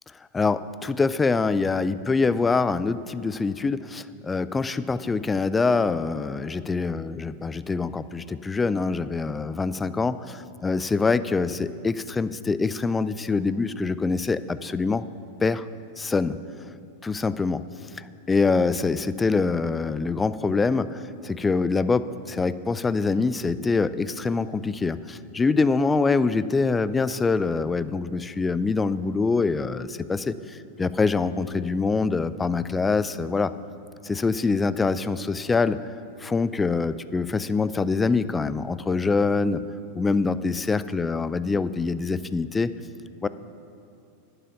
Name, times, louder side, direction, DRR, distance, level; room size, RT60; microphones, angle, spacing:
voice 1, 0.3-15.1 15.4-15.7 16.0-16.4 17.0-17.7 18.0-33.5 34.0-35.8 36.2-39.6 39.9-42.7 43.2-43.3, left 4 dB, 15° left, 15 dB, 0.4 m, -25 dB
11.0 x 10.0 x 5.7 m, 2.6 s
figure-of-eight pair, 90°, 0 cm